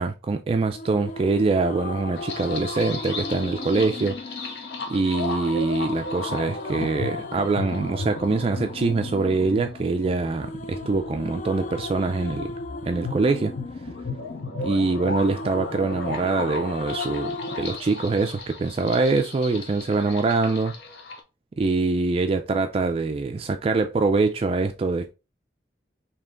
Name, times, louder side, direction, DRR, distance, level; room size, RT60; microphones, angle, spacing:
voice 1, 0.0-4.2 4.9-12.6 12.9-13.5 14.6-20.7 21.6-25.1, right 3 dB, 35° right, 0.3 m, -24 dB
sound 1, 0.7-17.8, left 3 dB, 45° left, 0.4 m, -37 dB
sound 2, 2.1-21.2, left 3 dB, 70° left, 0.9 m, -36 dB
3.4 x 2.8 x 3.7 m
head